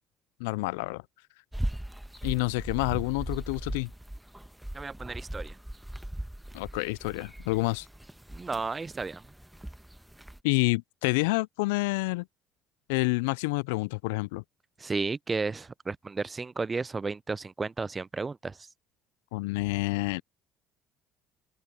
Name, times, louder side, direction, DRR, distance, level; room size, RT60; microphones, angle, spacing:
voice 1, 0.4-1.0 2.2-3.9 6.5-7.9 10.4-12.3 12.9-14.4 19.3-20.2, left 26 dB, 75° left, 0.5 m, -28 dB
sound 1, 1.5-10.4, right 1 dB, 5° right, 1.4 m, -39 dB
voice 2, 4.7-5.6 8.3-9.2 14.8-18.7, right 4 dB, 25° right, 0.7 m, -33 dB
open air
hypercardioid pair, 60°, 0 cm